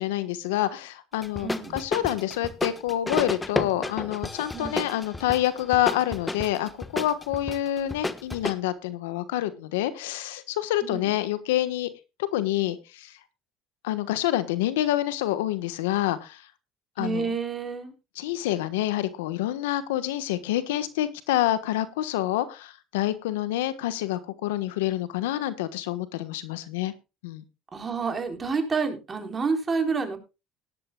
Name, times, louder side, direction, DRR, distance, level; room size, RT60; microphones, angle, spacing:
voice 1, 0.0-11.9 12.3-13.1 13.8-16.4 17.0-17.3 18.2-26.9 27.2-27.4, left 13 dB, 85° left, 13 dB, 1.3 m, -27 dB
sound 1, 1.2-8.5, left 2 dB, 15° left, 1.3 m, -32 dB
voice 2, 1.4-1.8 4.5-4.8 10.8-11.1 17.0-17.9 27.7-30.2, right 4 dB, 30° right, 5 dB, 4.2 m, -29 dB
18.5 x 11.0 x 2.3 m, 0.28 s
supercardioid pair, 75°, 0 cm